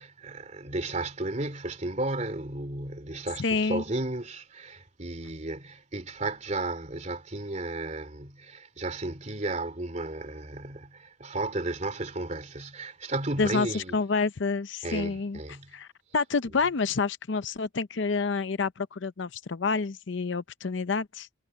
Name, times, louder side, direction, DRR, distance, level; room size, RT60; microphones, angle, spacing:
voice 1, 0.0-14.0 14.8-15.8, right 2 dB, 35° right, 3.2 m, -34 dB
voice 2, 3.4-3.8 13.4-15.4 15.7-21.3, left 4 dB, 65° left, 0.6 m, -28 dB
head